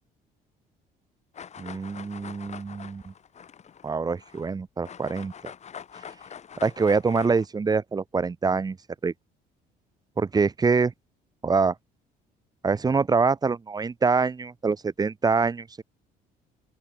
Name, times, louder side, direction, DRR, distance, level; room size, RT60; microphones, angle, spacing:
sound 1, 1.3-4.5 4.8-7.5, left 7 dB, 40° left, 3.8 m, -44 dB
voice 1, 1.6-3.1 3.8-5.3 6.6-8.8 9.0-9.1 10.2-10.9 11.4-11.7 12.6-15.8, right 4 dB, 25° right, 1.2 m, -25 dB
open air
cardioid pair, 110°, 17 cm